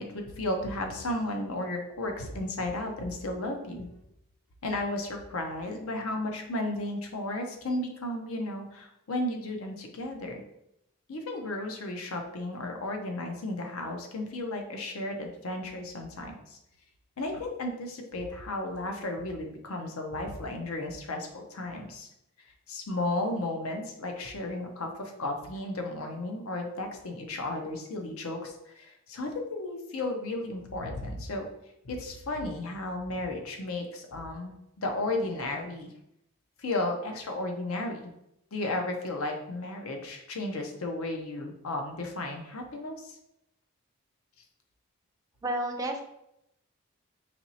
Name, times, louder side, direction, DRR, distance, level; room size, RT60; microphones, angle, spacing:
voice 1, 0.0-3.9 4.6-10.4 11.1-16.6 17.2-22.1 22.7-31.5 31.8-35.9 36.6-38.1 38.5-43.2, left 2 dB, 90° left, 3 dB, 0.7 m, -34 dB
voice 2, 45.4-46.0, right 1 dB, 15° right, 2 dB, 0.3 m, -30 dB
4.3 x 3.0 x 2.7 m, 0.81 s
head